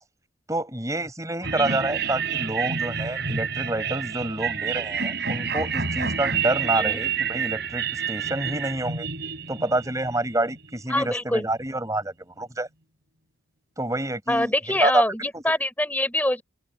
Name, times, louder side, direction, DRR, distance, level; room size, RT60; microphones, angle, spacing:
voice 1, 0.5-9.1 9.5-12.7 13.8-15.0 15.3-15.4, right 1 dB, 15° right, 5.0 m, -28 dB
sound 1, 1.4-10.8, right 7 dB, 60° right, 7.5 m, -29 dB
voice 2, 10.9-11.5 14.3-16.4, left 1 dB, 10° left, 3.9 m, -25 dB
open air
head